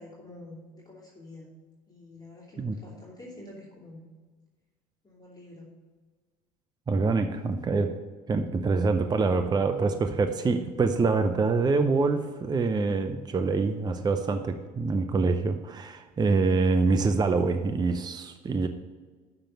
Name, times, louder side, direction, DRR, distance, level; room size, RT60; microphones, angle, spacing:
voice 1, 0.0-1.5 1.9-4.0 5.0-5.7, left 2 dB, 20° left, -4 dB, 2.7 m, -47 dB
voice 2, 6.9-8.0 8.3-18.7, right 4 dB, 20° right, 8 dB, 0.6 m, -25 dB
6.6 x 5.9 x 7.3 m, 1.4 s
hypercardioid pair, 65°, 20 cm